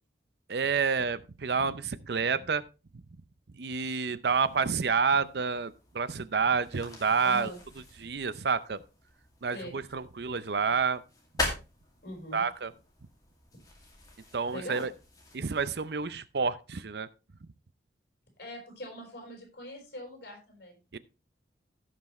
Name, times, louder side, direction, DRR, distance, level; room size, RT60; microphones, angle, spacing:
voice 1, 0.5-2.6 3.6-7.5 8.0-8.8 9.4-11.0 12.3-12.7 14.3-14.9 15.3-17.1 20.9-21.0, right 5 dB, 65° right, 0.6 m, -29 dB
sound 1, 4.3-16.2, left 2 dB, 20° left, 2.3 m, -43 dB
voice 2, 7.2-7.6 9.5-9.8 12.0-12.4 14.5-14.9 18.4-20.8, left 1 dB, 60° left, 4.7 m, -42 dB
16.0 x 6.0 x 3.1 m
head